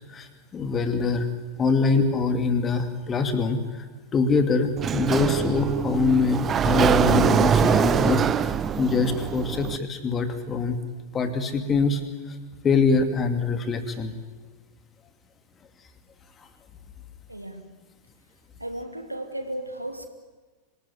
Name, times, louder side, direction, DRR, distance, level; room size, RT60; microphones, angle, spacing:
voice 1, 0.5-1.3 1.6-3.6 4.1-10.8 11.1-12.0 12.6-14.1, left 4 dB, 20° left, 8 dB, 2.5 m, -24 dB
Sliding door, 4.8-9.8, right 7 dB, 25° right, 0.9 m, -23 dB
voice 2, 17.3-17.7 18.6-20.1, right 1 dB, 85° right, 7 dB, 2.3 m, -34 dB
26.0 x 18.5 x 9.9 m, 1.3 s
figure-of-eight pair, 90°, 0 cm